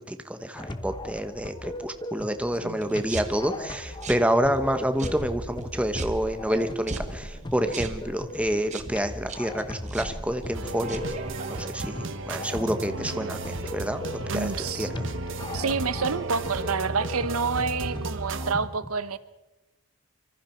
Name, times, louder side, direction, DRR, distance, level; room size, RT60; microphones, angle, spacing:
voice 1, 0.0-11.0 11.5-14.9, equal, 5° right, 8 dB, 1.1 m, -28 dB
sound 1, 0.5-18.5, left 1 dB, 20° left, 1.1 m, -39 dB
sound 2, 2.8-11.7, right 2 dB, 30° right, 1.6 m, -39 dB
sound 3, 10.5-18.5, right 2 dB, 55° right, 1.2 m, -34 dB
voice 2, 14.3-14.9 15.5-19.2, right 5 dB, 75° right, 14 dB, 1.0 m, -28 dB
25.5 x 25.0 x 4.5 m, 1.1 s
head